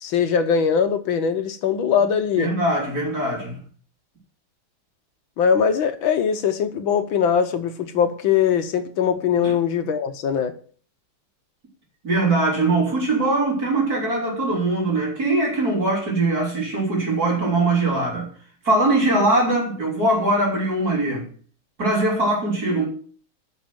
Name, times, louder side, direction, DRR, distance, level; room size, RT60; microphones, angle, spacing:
voice 1, 0.0-2.5 5.4-10.6, left 7 dB, 70° left, 1.7 m, -21 dB
voice 2, 2.4-3.6 9.4-9.5 12.0-18.3 18.6-21.2 21.8-22.9, right 2 dB, 45° right, 4.2 m, -21 dB
9.6 x 6.4 x 7.8 m
omnidirectional pair, 2.3 m